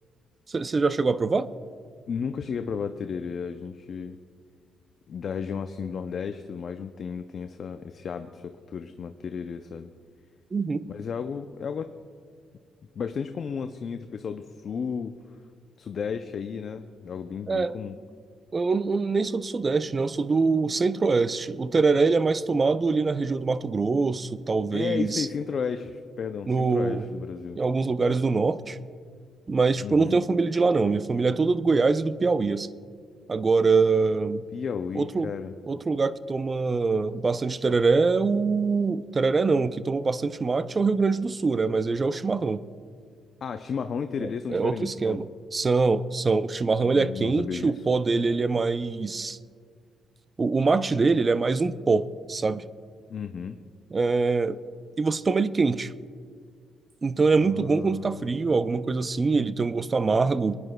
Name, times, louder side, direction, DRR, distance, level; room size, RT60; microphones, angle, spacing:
voice 1, 0.5-1.5 10.5-10.8 17.5-17.7 18.5-25.3 26.5-27.1 27.6-28.8 29.5-32.7 33.3-34.4 35.0-35.3 35.7-42.6 44.2-45.3 45.5-49.4 50.4-52.6 53.9-54.6 55.0-55.9 57.0-60.6, right 4 dB, 30° right, 15 dB, 0.4 m, -24 dB
voice 2, 2.1-4.2 5.1-9.9 10.8-11.9 13.0-15.1 15.8-17.9 24.7-27.6 29.8-30.2 34.5-35.5 43.4-45.2 46.8-47.8 53.1-53.6 57.4-58.3, left 6 dB, 55° left, 8 dB, 0.4 m, -33 dB
25.0 x 9.6 x 2.2 m, 2.1 s
cardioid pair, 90°, 0 cm